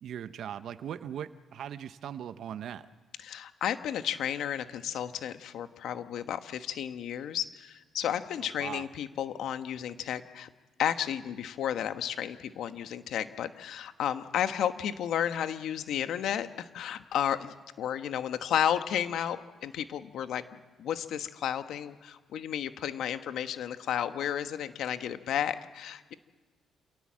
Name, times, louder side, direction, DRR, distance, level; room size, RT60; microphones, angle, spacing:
voice 1, 0.0-2.9 8.4-8.9, right 9 dB, 70° right, 11 dB, 0.8 m, -39 dB
voice 2, 3.2-10.5 10.8-26.1, left 9 dB, 75° left, 10 dB, 1.2 m, -32 dB
29.0 x 18.0 x 7.5 m, 1.3 s
cardioid pair, 90°, 0 cm